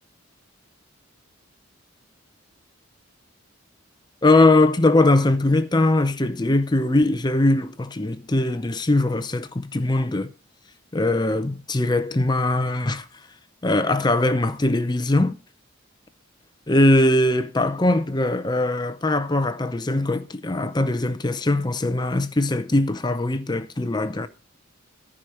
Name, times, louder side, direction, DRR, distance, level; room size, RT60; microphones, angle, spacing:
voice 1, 4.2-10.3 10.9-13.1 13.6-15.4 16.7-24.3, left 2 dB, 20° left, 0.5 m, -21 dB
14.5 x 5.0 x 6.1 m
head